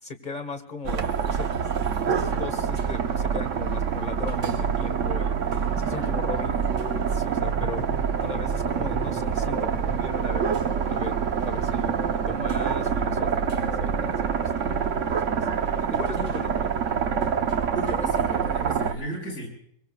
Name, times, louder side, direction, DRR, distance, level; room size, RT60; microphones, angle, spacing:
voice 1, 0.0-1.5 2.1-11.2 11.4-16.7 17.0-17.3, left 2 dB, 30° left, 8 dB, 1.8 m, -38 dB
sound 1, 0.8-18.9, right 7 dB, 60° right, 1.3 m, -26 dB
sound 2, 2.0-12.3, right 6 dB, 35° right, 1.0 m, -43 dB
voice 2, 5.9-6.3 17.7-19.5, right 1 dB, 60° left, 0 dB, 8.6 m, -35 dB
sound 3, 7.5-13.2, right 1 dB, 5° left, 2.1 m, -42 dB
23.5 x 23.0 x 2.4 m, 0.69 s
omnidirectional pair, 1.6 m